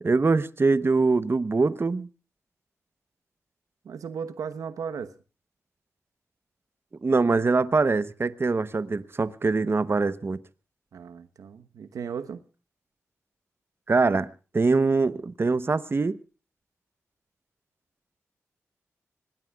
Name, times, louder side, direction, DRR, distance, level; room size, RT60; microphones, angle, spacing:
voice 1, 0.0-2.1 7.0-10.4 13.9-16.2, right 3 dB, 45° right, 1.0 m, -23 dB
voice 2, 3.8-5.1 10.9-12.4, right 6 dB, 85° right, 1.1 m, -36 dB
26.0 x 19.0 x 2.4 m
cardioid pair, 45°, 6 cm